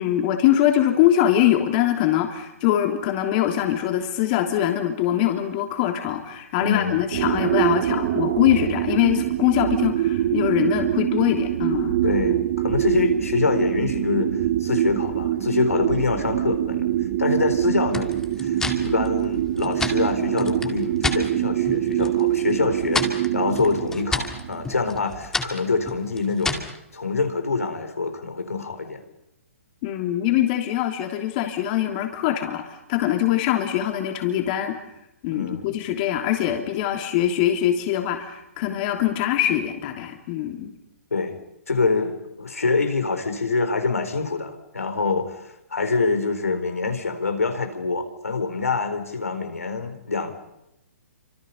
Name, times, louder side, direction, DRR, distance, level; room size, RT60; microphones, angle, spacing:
voice 1, 0.0-12.0 29.8-34.8 35.2-40.7, left 12 dB, 40° left, 4 dB, 3.2 m, -23 dB
voice 2, 6.6-7.1 12.0-16.9 17.2-18.1 18.4-26.6 26.9-29.0 35.3-35.7 41.1-41.4 41.7-50.3, left 4 dB, 85° left, 6 dB, 4.1 m, -25 dB
sound 1, 7.1-25.3, right 12 dB, 50° right, 1.8 m, -24 dB
sound 2, 17.9-21.2 21.6-22.2 22.5-26.8, left 3 dB, 5° left, 2.4 m, -30 dB
29.0 x 26.0 x 5.5 m, 0.85 s
hypercardioid pair, 130°, 8 cm